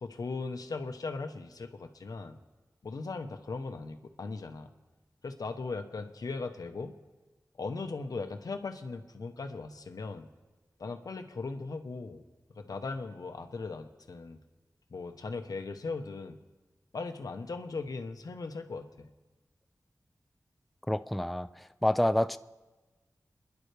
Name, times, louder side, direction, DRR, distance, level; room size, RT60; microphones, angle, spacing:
voice 1, 0.0-2.4 2.8-4.7 5.2-6.9 7.6-10.3 10.8-12.2 12.5-14.4 14.9-16.4 16.9-19.1, left 3 dB, 80° left, 7 dB, 1.1 m, -38 dB
voice 2, 20.9-22.4, left 1 dB, ahead, 12 dB, 0.4 m, -28 dB
28.5 x 11.0 x 3.4 m, 1.2 s
wide cardioid pair, 70°, 6 cm